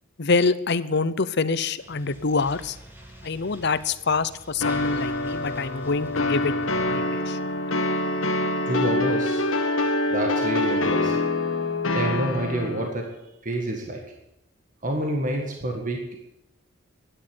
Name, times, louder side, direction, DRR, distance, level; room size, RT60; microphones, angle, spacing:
voice 1, 0.2-2.8 3.2-6.5 6.9-7.4, left 4 dB, 55° left, 15 dB, 0.7 m, -25 dB
sound 1, 1.8-7.0, right 1 dB, 10° right, 2.4 m, -48 dB
sound 2, 4.6-12.9, left 2 dB, 70° left, 1.6 m, -25 dB
voice 2, 8.7-9.5 10.1-11.3 11.9-14.1 14.8-16.2, right 1 dB, 40° right, 2 dB, 1.8 m, -28 dB
12.5 x 10.0 x 9.6 m, 0.84 s
head